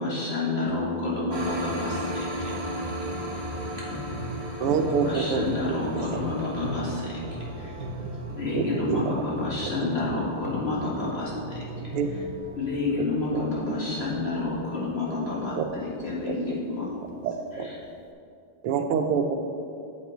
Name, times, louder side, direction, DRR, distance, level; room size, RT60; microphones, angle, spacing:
voice 1, 0.0-2.8 3.8-4.0 4.9-7.7 8.4-11.9 12.6-16.8 17.5-17.8, left 3 dB, 30° left, -6 dB, 1.5 m, -30 dB
Harp, 0.7-18.1, left 3 dB, 85° left, 0.8 m, -42 dB
sound 1, 1.3-16.2, right 1 dB, 30° right, 1.1 m, -39 dB
voice 2, 3.1-5.1 7.6-8.8 12.0-12.9 16.3-17.0 17.8-17.9, equal, 60° left, -3 dB, 2.0 m, -49 dB
sound 2, 3.7-13.3 14.1-15.8 16.0-17.6, right 2 dB, 60° right, 1.0 m, -40 dB
voice 3, 4.6-6.1 8.5-9.1 11.9-12.1 13.0-13.1 13.3-13.5 15.6-15.7 16.3-16.4 17.2-17.7 18.6-19.3, right 6 dB, 90° right, 6 dB, 1.6 m, -26 dB
8.0 x 5.4 x 5.0 m, 2.7 s
omnidirectional pair, 2.4 m